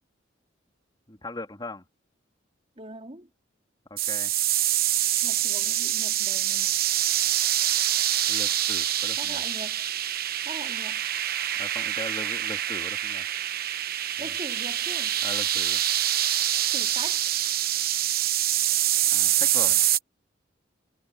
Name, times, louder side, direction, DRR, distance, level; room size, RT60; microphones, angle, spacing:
voice 1, 1.1-1.8 3.9-4.3 8.3-9.4 11.6-13.3 14.2-14.3 15.2-15.8 19.1-19.8, left 2 dB, 25° left, 2.9 m, -39 dB
voice 2, 2.8-3.3 5.2-6.7 9.2-9.8 10.4-11.1 14.2-15.2 16.7-17.2, right 2 dB, 35° right, 3.4 m, -41 dB
sound 1, 4.0-20.0, right 12 dB, 50° right, 1.0 m, -25 dB
head